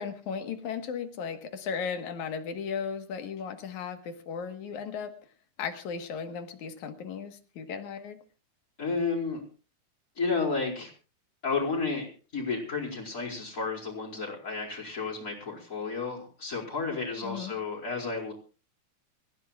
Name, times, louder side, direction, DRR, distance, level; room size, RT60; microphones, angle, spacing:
voice 1, 0.0-5.1 5.6-8.2 17.2-17.6, left 6 dB, 80° left, 7 dB, 2.9 m, -36 dB
voice 2, 8.8-9.4 10.2-10.9 11.4-18.3, left 4 dB, 25° left, -6 dB, 4.6 m, -32 dB
26.5 x 15.0 x 2.4 m, 0.35 s
omnidirectional pair, 3.3 m